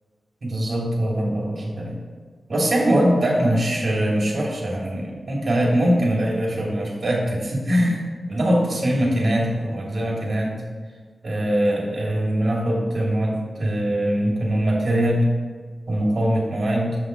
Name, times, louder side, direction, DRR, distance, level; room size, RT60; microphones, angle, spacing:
voice 1, 0.4-2.0 2.5-8.0 8.3-10.6 11.2-15.3 15.9-17.0, right 1 dB, 45° right, -3 dB, 2.5 m, -22 dB
7.1 x 5.8 x 4.6 m, 1.5 s
wide cardioid pair, 140°, 0 cm